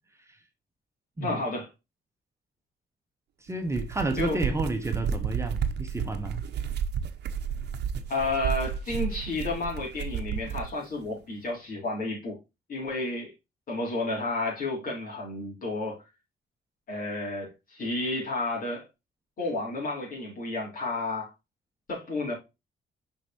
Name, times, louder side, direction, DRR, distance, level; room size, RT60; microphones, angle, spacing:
voice 1, 1.2-1.7 4.2-4.4 8.1-12.4 12.7-13.3 13.7-16.0 16.9-18.8 19.4-21.3 21.9-22.3, left 2 dB, 55° left, 4.0 m, -31 dB
voice 2, 3.4-6.4, right 2 dB, 15° right, 1.0 m, -31 dB
sound 1, 3.5-10.7, right 7 dB, 85° right, 0.8 m, -32 dB
6.8 x 5.4 x 2.9 m
cardioid pair, 130°, 17 cm